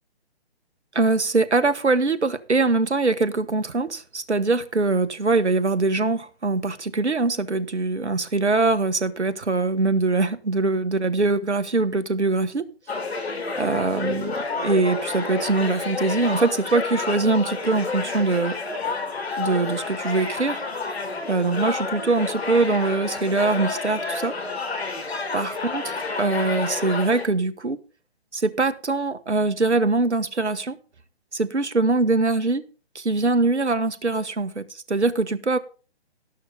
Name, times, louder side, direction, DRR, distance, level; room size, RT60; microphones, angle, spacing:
voice 1, 0.9-12.7 13.6-18.6 19.4-20.6 21.3-24.4 25.3-27.8 28.3-30.8 31.3-32.6 32.9-35.6, right 3 dB, 85° right, 1.2 m, -23 dB
sound 1, 12.9-27.3, left 3 dB, 65° left, 3.2 m, -30 dB
12.5 x 11.5 x 3.8 m
figure-of-eight pair, 135°, 33 cm